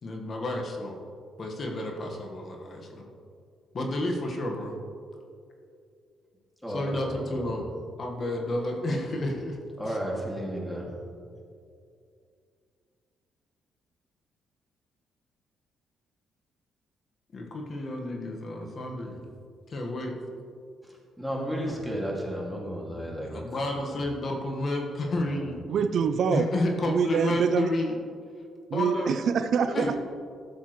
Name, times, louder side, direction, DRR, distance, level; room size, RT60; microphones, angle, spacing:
voice 1, 0.0-0.9 1.4-3.1 3.7-4.7 6.7-7.6 8.0-9.6 9.8-10.0 17.3-19.2 19.7-20.1 23.2-25.6 26.3-28.0 28.7-29.2 29.7-30.0, left 1 dB, 45° left, 1 dB, 1.4 m, -31 dB
voice 2, 6.6-7.7 9.8-10.9 20.8-23.3 23.9-24.0 25.0-25.5, equal, ahead, -2 dB, 2.2 m, -34 dB
voice 3, 25.7-26.5 26.9-27.7 28.7-29.9, right 6 dB, 65° right, 10 dB, 0.4 m, -25 dB
13.0 x 7.2 x 3.1 m, 2.4 s
cardioid pair, 90°, 0 cm